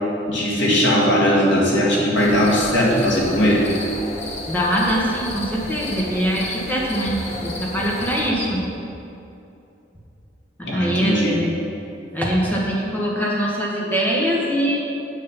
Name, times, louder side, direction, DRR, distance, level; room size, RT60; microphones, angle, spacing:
voice 1, 0.3-3.7 10.6-11.4, equal, 75° left, -4 dB, 2.3 m, -18 dB
sound 1, 2.2-8.3, left 1 dB, 40° left, 1.2 m, -33 dB
voice 2, 4.5-8.7 10.7-11.6 12.1-14.8, equal, 10° left, -4 dB, 1.6 m, -22 dB
9.2 x 6.3 x 5.8 m, 2.7 s
head